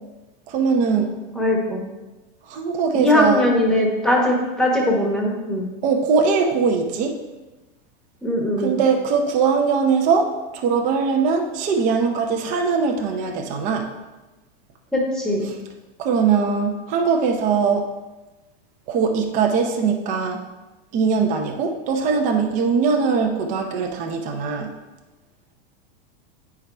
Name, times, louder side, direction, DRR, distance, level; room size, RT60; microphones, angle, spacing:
voice 1, 0.5-1.1 2.5-3.5 5.8-7.1 8.6-13.9 15.4-15.5 16.0-17.9 18.9-20.4 20.9-24.7, right 5 dB, 25° right, 3 dB, 0.6 m, -21 dB
voice 2, 1.3-1.9 2.9-5.7 8.2-8.8 14.9-15.5, left 1 dB, ahead, -2 dB, 1.1 m, -20 dB
9.3 x 4.7 x 3.4 m, 1.1 s
supercardioid pair, 160°, 30 cm